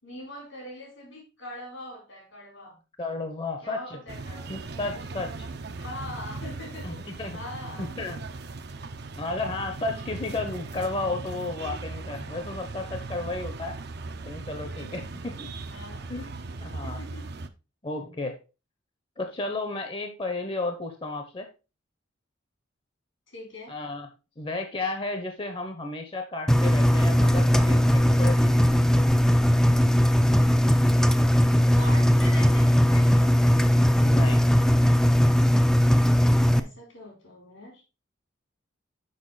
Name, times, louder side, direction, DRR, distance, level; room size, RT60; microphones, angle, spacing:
voice 1, 0.0-2.8 3.6-4.6 5.8-7.0 7.3-8.1 15.7-16.0 16.7-17.3 23.3-23.8 31.7-33.8 36.5-37.8, left 1 dB, 85° left, 1 dB, 4.1 m, -42 dB
voice 2, 3.0-4.0 4.5-5.5 6.8-7.4 7.8-8.2 9.2-13.8 14.2-15.5 16.1-16.3 16.6-17.0 17.8-18.4 19.2-21.5 23.7-24.1 24.4-29.1 34.0-34.4, left 2 dB, 30° left, 6 dB, 0.8 m, -33 dB
sound 1, 4.1-17.5, right 3 dB, 60° right, 0.7 m, -38 dB
Engine, 26.5-36.6, equal, 5° left, 0.4 m, -19 dB
6.5 x 5.4 x 4.0 m, 0.31 s
head